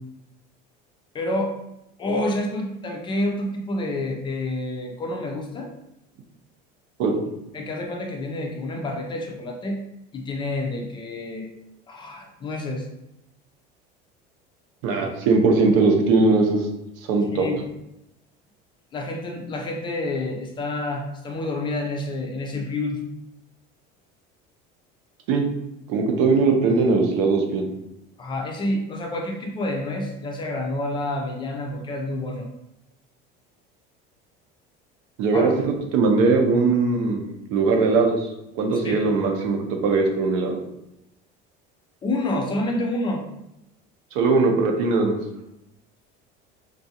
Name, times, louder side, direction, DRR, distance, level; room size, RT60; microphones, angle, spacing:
voice 1, 1.1-1.5 2.0-5.7 7.5-9.8 10.1-11.5 11.9-12.9 17.3-17.6 18.9-23.0 28.2-32.5 35.3-35.5 38.7-39.0 42.0-43.2, left 1 dB, 25° left, 2 dB, 0.4 m, -28 dB
voice 2, 14.8-16.7 17.1-17.5 25.3-25.4 25.9-27.7 35.2-37.2 37.5-40.6 44.1-45.1, right 3 dB, 75° right, 2 dB, 0.8 m, -20 dB
3.7 x 2.4 x 2.8 m, 0.86 s
cardioid pair, 160°, 21 cm